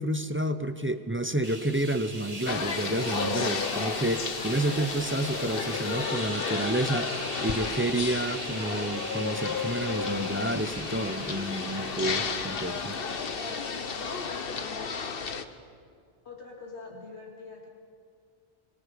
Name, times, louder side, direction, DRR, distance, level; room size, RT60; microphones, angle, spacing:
voice 1, 0.0-7.1 7.4-13.0, right 1 dB, 15° right, 10 dB, 0.6 m, -30 dB
sound 1, 1.4-14.8, right 2 dB, 30° right, 2.3 m, -41 dB
sound 2, 2.5-15.5, left 5 dB, 55° left, 1.2 m, -32 dB
voice 2, 16.2-17.7, left 4 dB, 70° left, 0 dB, 2.8 m, -44 dB
24.0 x 23.5 x 5.2 m, 2.3 s
omnidirectional pair, 1.2 m